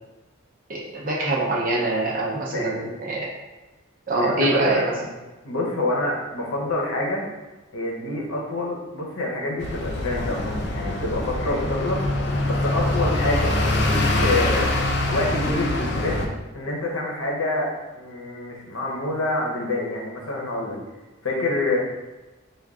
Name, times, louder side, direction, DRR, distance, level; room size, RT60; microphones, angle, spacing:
voice 1, 0.7-3.3 4.1-5.0, right 2 dB, 40° right, -3 dB, 0.7 m, -24 dB
voice 2, 4.1-5.0 5.4-7.2 7.7-12.0 12.4-14.7 15.1-16.3 16.5-20.8 21.2-21.8, left 2 dB, 80° left, -1 dB, 0.8 m, -27 dB
sound 1, 9.6-16.3, left 2 dB, 55° left, 0.4 m, -24 dB
3.5 x 2.3 x 3.6 m, 1.1 s
head